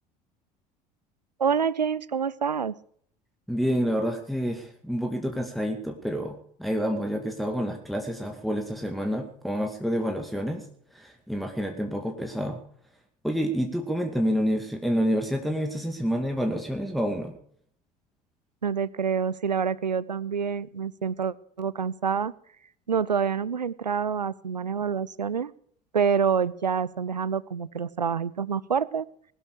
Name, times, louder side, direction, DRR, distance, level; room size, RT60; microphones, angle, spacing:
voice 1, 1.4-2.7 18.6-22.3 22.9-25.5 25.9-29.1, right 6 dB, 85° right, 22 dB, 0.6 m, -27 dB
voice 2, 3.5-10.7 10.9-12.6 13.2-17.4, equal, ahead, 3 dB, 2.4 m, -28 dB
20.5 x 12.0 x 4.9 m, 0.63 s
figure-of-eight pair, 65°, 21 cm